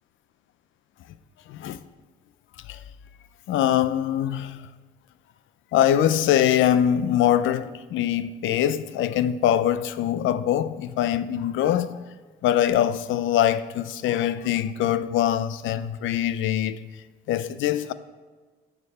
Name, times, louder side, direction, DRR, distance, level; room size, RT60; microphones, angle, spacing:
voice 1, 3.5-4.6 5.7-12.0 12.4-16.8 17.3-17.9, left 11 dB, 80° left, 0.6 m, -23 dB
12.0 x 7.0 x 4.2 m
cardioid pair, 90°, 20 cm